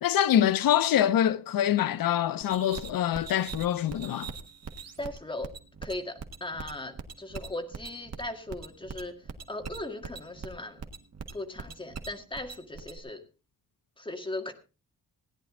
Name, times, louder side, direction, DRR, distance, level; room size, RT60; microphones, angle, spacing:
voice 1, 0.0-4.3, left 10 dB, 85° left, 0.6 m, -25 dB
sound 1, 2.4-13.0, right 5 dB, 50° right, 1.5 m, -42 dB
voice 2, 5.0-5.5 5.8-9.2 9.5-10.8 11.3-13.2 14.0-14.5, left 2 dB, 15° left, 1.9 m, -38 dB
17.5 x 10.5 x 3.7 m
wide cardioid pair, 155°, 34 cm